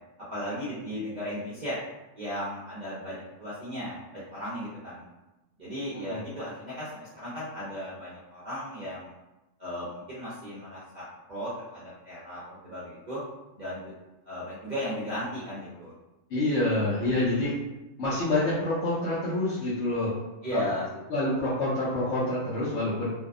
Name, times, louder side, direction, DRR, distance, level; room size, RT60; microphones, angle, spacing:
voice 1, 0.3-1.8 2.2-5.0 5.6-9.1 9.6-13.2 13.5-13.9 14.2-15.9 17.2-17.5 20.4-20.9, equal, 45° right, -10 dB, 0.6 m, -36 dB
voice 2, 16.3-17.6 18.0-20.1 20.5-20.6 21.1-23.1, left 2 dB, 65° left, -9 dB, 0.9 m, -27 dB
2.6 x 2.1 x 2.4 m, 1.0 s
omnidirectional pair, 1.4 m